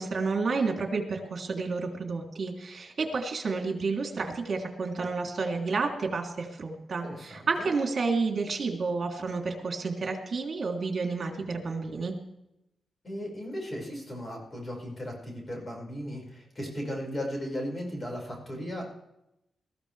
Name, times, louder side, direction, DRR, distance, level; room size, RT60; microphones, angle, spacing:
voice 1, 0.0-12.1, right 4 dB, 50° right, 1 dB, 3.3 m, -30 dB
voice 2, 7.0-7.7 13.0-18.8, equal, 30° left, -1 dB, 5.8 m, -36 dB
22.0 x 15.0 x 3.5 m, 0.86 s
wide cardioid pair, 115°, 0 cm